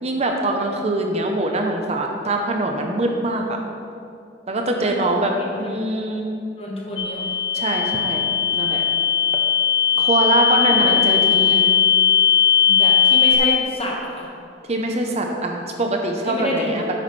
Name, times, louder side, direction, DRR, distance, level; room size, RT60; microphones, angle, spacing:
voice 1, 0.0-3.6 4.5-6.3 7.5-8.2 8.5-8.8 10.0-11.6 14.7-16.9, right 2 dB, 35° right, 3 dB, 0.7 m, -23 dB
voice 2, 4.6-5.1 5.4-5.9 6.6-7.2 10.5-11.6 12.7-14.3 16.3-16.9, equal, 35° left, -2 dB, 1.4 m, -29 dB
sound 1, 7.0-13.4, left 8 dB, 80° left, 0.9 m, -18 dB
9.5 x 8.3 x 3.2 m, 2.5 s
head